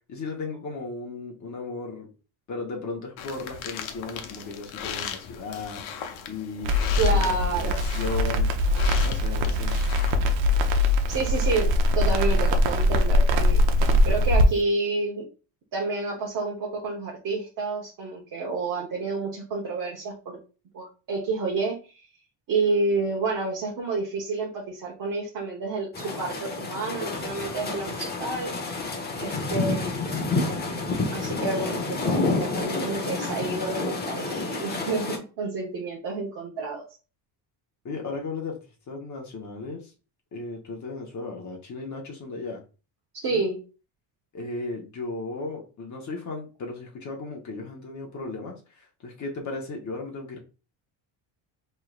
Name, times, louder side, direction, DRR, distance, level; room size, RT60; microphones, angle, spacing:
voice 1, 0.1-2.1 2.5-6.0 6.3-8.5 9.0-9.8 37.8-38.6 38.9-39.9 40.3-42.6 43.3-43.4 44.3-50.4, left 3 dB, 40° left, 0 dB, 1.1 m, -35 dB
sound 1, 3.2-10.1, left 8 dB, 80° left, 0.9 m, -38 dB
Crackle, 6.6-14.4, left 1 dB, 75° right, 0.8 m, -22 dB
voice 2, 7.0-7.8 11.1-13.6 14.0-15.3 15.7-20.4 20.7-22.1 22.5-28.6 29.2-30.0 31.1-36.8 43.2-43.6, right 3 dB, 45° right, -2 dB, 1.1 m, -29 dB
sound 2, 25.9-35.2, left 3 dB, 20° left, 0.9 m, -29 dB
4.5 x 3.3 x 2.4 m, 0.33 s
cardioid pair, 135°, 45 cm